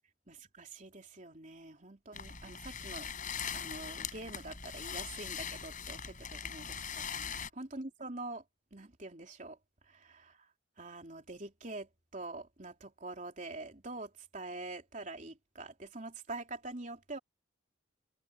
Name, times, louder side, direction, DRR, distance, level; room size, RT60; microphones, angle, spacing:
voice 1, 0.3-3.1 3.5-8.4 8.7-9.6 9.8-10.5 10.8-17.2, right 2 dB, 40° right, 3.5 m, -45 dB
sound 1, 2.1-7.5, left 7 dB, 40° left, 7.3 m, -41 dB
open air
head